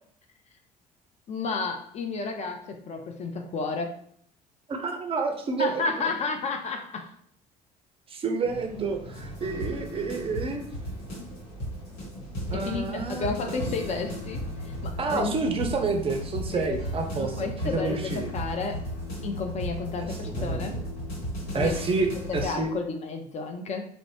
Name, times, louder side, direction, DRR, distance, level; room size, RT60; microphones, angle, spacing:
voice 1, 1.3-4.0 5.6-7.1 11.2-11.3 12.5-15.4 16.5-16.8 17.2-18.8 19.2-20.8 21.5-21.9 22.3-23.9, left 4 dB, 35° left, 4 dB, 0.4 m, -32 dB
voice 2, 4.7-6.0 8.1-10.6 12.5-13.7 15.0-18.3 20.1-20.9 21.5-22.7, right 4 dB, 25° right, 4 dB, 0.5 m, -29 dB
sound 1, 8.4-22.7, right 1 dB, 80° left, 1.0 m, -46 dB
sound 2, 9.1-22.4, equal, 55° left, 1.3 m, -35 dB
2.5 x 2.0 x 3.0 m, 0.64 s
figure-of-eight pair, 55°, 21 cm